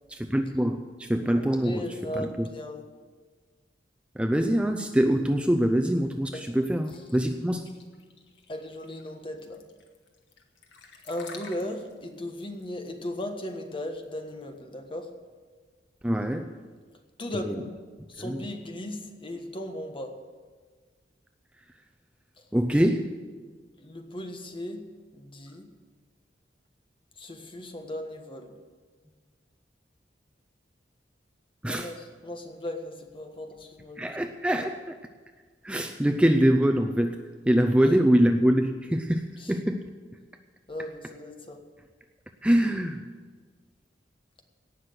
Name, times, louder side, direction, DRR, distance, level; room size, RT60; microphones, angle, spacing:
voice 1, 0.1-2.5 4.1-7.7 16.0-16.5 17.4-17.6 18.2-18.5 22.5-23.2 31.6-31.9 34.0-35.0 35.6-39.9 42.4-43.1, equal, 5° right, 5 dB, 0.5 m, -24 dB
voice 2, 1.4-2.8 6.3-6.6 8.5-9.6 11.0-15.1 17.2-17.8 18.1-20.1 22.4-22.5 23.8-25.7 27.2-28.6 31.7-34.1 40.7-41.6, left 1 dB, 30° left, 5 dB, 1.4 m, -37 dB
sound 1, 6.9-14.6, left 4 dB, 80° left, 1.7 m, -50 dB
17.5 x 6.3 x 8.0 m, 1.5 s
head